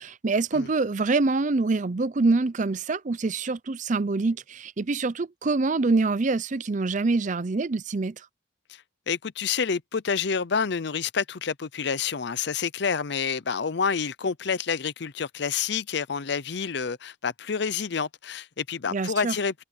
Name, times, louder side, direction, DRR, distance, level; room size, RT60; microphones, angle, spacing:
voice 1, 0.0-8.2 18.9-19.3, right 3 dB, 40° right, 0.6 m, -25 dB
voice 2, 8.7-19.6, left 6 dB, 65° left, 0.6 m, -28 dB
head